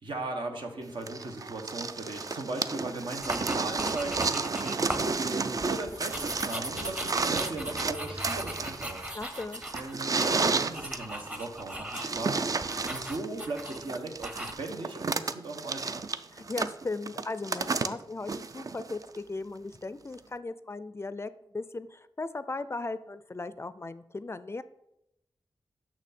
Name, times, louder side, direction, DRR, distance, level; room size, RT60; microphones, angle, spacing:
voice 1, 0.0-9.4 9.7-16.0, right 2 dB, 75° right, 3 dB, 1.3 m, -38 dB
sound 1, 1.1-19.2 20.2-20.3, right 4 dB, 45° right, 0.4 m, -32 dB
sound 2, 3.2-5.1 5.5-12.2 12.6-13.8 14.2-14.5, right 1 dB, 15° right, 0.8 m, -38 dB
voice 2, 9.1-9.6 16.3-24.6, left 3 dB, 30° left, 14 dB, 0.4 m, -37 dB
6.2 x 6.1 x 4.3 m, 0.82 s
cardioid pair, 60°, 8 cm